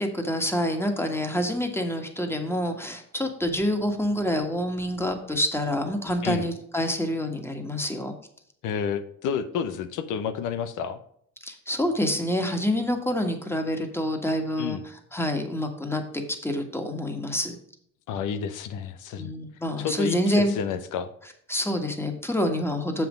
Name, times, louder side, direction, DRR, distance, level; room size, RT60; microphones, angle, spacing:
voice 1, 0.0-8.1 11.4-14.8 15.1-17.6 19.2-20.5 21.5-23.1, left 1 dB, 10° left, 5 dB, 1.6 m, -27 dB
voice 2, 8.6-11.0 14.6-14.8 18.1-19.3 19.8-21.1, left 7 dB, 90° left, 11 dB, 0.8 m, -30 dB
7.0 x 6.0 x 5.1 m, 0.67 s
cardioid pair, 90°, 30 cm